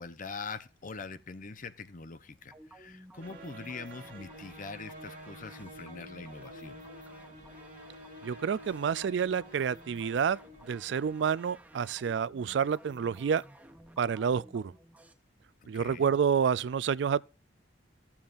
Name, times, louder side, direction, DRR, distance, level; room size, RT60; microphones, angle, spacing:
voice 1, 0.0-6.8 15.7-16.1, left 4 dB, 50° left, 0.8 m, -43 dB
sound 1, 2.5-15.1, right 1 dB, 10° right, 1.1 m, -54 dB
sound 2, 3.2-11.6, equal, 50° right, 1.8 m, -50 dB
voice 2, 8.2-10.4 10.7-13.4 14.0-14.7 15.7-17.2, right 7 dB, 70° right, 0.4 m, -29 dB
14.5 x 7.2 x 2.5 m
head